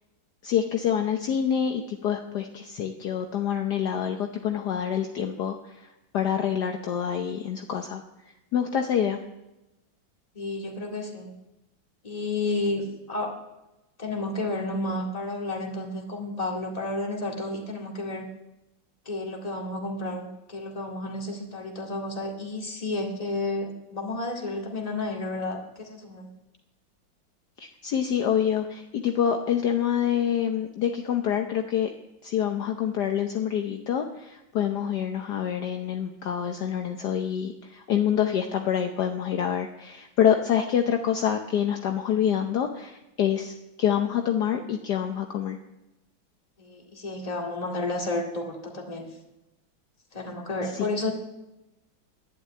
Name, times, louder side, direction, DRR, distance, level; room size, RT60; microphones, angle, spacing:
voice 1, 0.4-8.0 8.5-9.2 27.6-31.9 32.2-45.6 50.7-50.9, left 9 dB, 65° left, 5 dB, 1.3 m, -26 dB
voice 2, 10.3-11.3 12.0-13.3 14.0-18.3 19.1-26.3 46.6-49.1 50.1-51.1, left 2 dB, 20° left, 0 dB, 2.2 m, -31 dB
11.5 x 9.5 x 9.0 m, 0.97 s
omnidirectional pair, 2.1 m